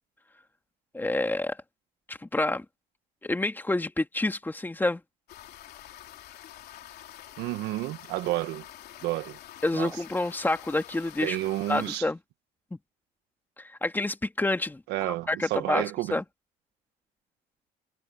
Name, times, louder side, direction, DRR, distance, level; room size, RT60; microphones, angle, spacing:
voice 1, 0.9-1.6 2.1-2.6 3.2-5.0 9.6-11.4 11.7-12.2 13.6-16.2, left 2 dB, 10° left, 2.3 m, -28 dB
sound 1, 5.3-12.0, left 13 dB, 70° left, 3.7 m, -47 dB
voice 2, 7.4-8.6 9.0-9.4 9.8-9.9 11.2-12.0 14.9-16.2, right 17 dB, 90° right, 1.2 m, -30 dB
cardioid pair, 110°, 17 cm